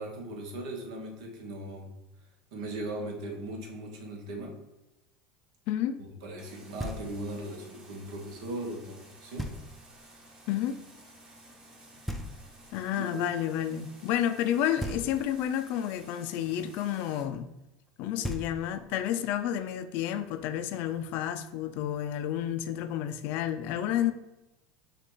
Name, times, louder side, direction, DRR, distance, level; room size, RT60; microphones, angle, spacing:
voice 1, 0.0-1.9 2.5-4.6 6.0-9.5 13.0-13.1 18.1-18.2, right 1 dB, 75° right, 1.1 m, -38 dB
voice 2, 5.7-6.0 10.5-10.8 12.7-17.5 18.0-24.1, left 11 dB, 60° left, 0.4 m, -30 dB
sound 1, 6.4-17.2, right 1 dB, 20° right, 1.1 m, -54 dB
Knock, 6.8-7.5 9.4-10.0 12.1-12.9 14.8-15.6 17.9-18.0 18.2-19.0, equal, ahead, 0.5 m, -38 dB
5.4 x 2.4 x 3.9 m
supercardioid pair, 105°, 4 cm